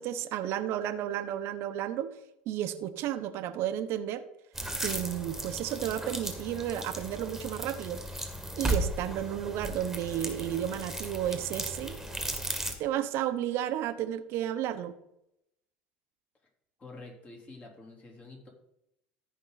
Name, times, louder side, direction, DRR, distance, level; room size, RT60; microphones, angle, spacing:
voice 1, 0.0-2.1 2.5-4.2 4.8-8.0 8.6-12.0 12.8-14.9, right 11 dB, 60° right, 10 dB, 0.9 m, -32 dB
sound 1, 4.5-12.7, right 1 dB, 5° right, 2.0 m, -36 dB
voice 2, 16.8-18.5, left 2 dB, 30° left, -1 dB, 3.5 m, -48 dB
14.0 x 5.4 x 4.0 m, 0.81 s
hypercardioid pair, 80°, 5 cm